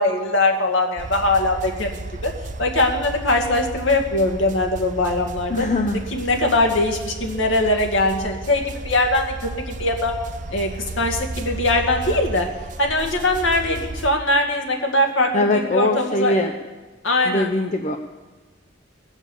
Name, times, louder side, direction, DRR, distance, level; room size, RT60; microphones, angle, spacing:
voice 1, 0.0-2.3 2.6-5.7 6.1-10.2 10.5-10.7 11.0-12.5 12.8-16.3 17.0-17.5, left 2 dB, 85° left, 2 dB, 2.0 m, -21 dB
sound 1, 1.0-14.1, right 2 dB, 40° right, 0.6 m, -33 dB
voice 2, 5.5-6.1 15.3-16.5 17.2-18.0, left 2 dB, 40° left, 5 dB, 0.6 m, -21 dB
20.0 x 7.2 x 7.2 m, 1.2 s
head